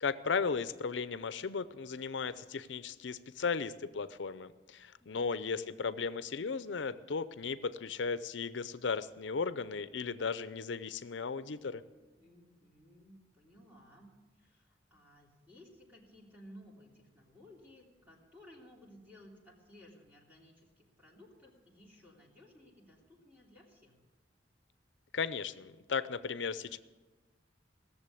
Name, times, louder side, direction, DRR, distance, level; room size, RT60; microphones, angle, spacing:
voice 1, 0.0-11.8 25.1-26.8, left 5 dB, 75° left, 15 dB, 0.6 m, -36 dB
voice 2, 12.2-24.0, left 1 dB, 10° right, -4 dB, 3.0 m, -58 dB
17.5 x 7.2 x 8.3 m, 1.2 s
head